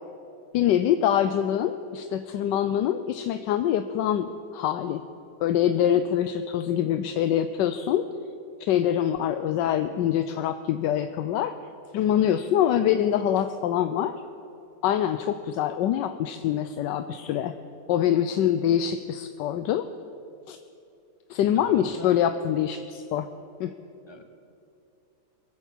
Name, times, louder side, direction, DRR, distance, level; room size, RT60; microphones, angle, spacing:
voice 1, 0.5-5.0 5.4-8.0 8.6-11.5 11.9-14.2 14.8-17.5 17.9-19.9 20.5-20.6 21.3-23.3 23.6-23.7, left 10 dB, 80° left, 9 dB, 1.3 m, -24 dB
voice 2, 21.5-22.1 24.1-24.2, left 2 dB, 20° left, 6 dB, 1.0 m, -43 dB
23.5 x 8.1 x 7.5 m, 2.8 s
omnidirectional pair, 1.9 m